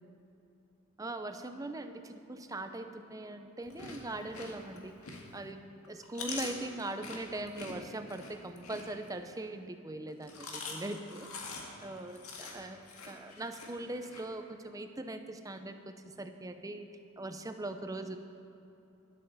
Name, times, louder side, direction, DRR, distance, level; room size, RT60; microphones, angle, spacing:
voice 1, 1.0-5.0 5.3-11.3 11.8-12.8 13.1-16.8 17.2-18.2, right 2 dB, 15° right, 7 dB, 0.6 m, -41 dB
Chewing mastication, 3.6-5.5 5.8-9.4 10.1-14.2, left 4 dB, 85° left, 1.9 m, -44 dB
11.5 x 8.6 x 7.1 m, 2.8 s
head